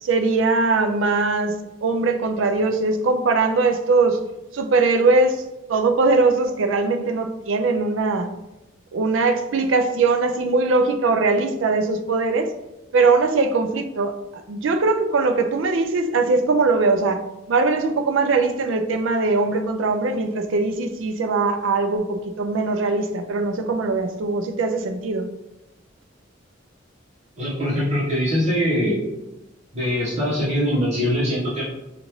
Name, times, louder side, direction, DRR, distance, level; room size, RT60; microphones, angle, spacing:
voice 1, 0.0-1.6 1.8-4.2 4.5-5.4 5.7-8.3 8.9-12.5 12.9-17.2 17.5-25.3, right 3 dB, 85° right, 7 dB, 0.4 m, -21 dB
voice 2, 27.4-29.0 29.7-31.6, equal, 35° right, -9 dB, 1.1 m, -22 dB
5.1 x 2.5 x 3.0 m, 0.96 s
head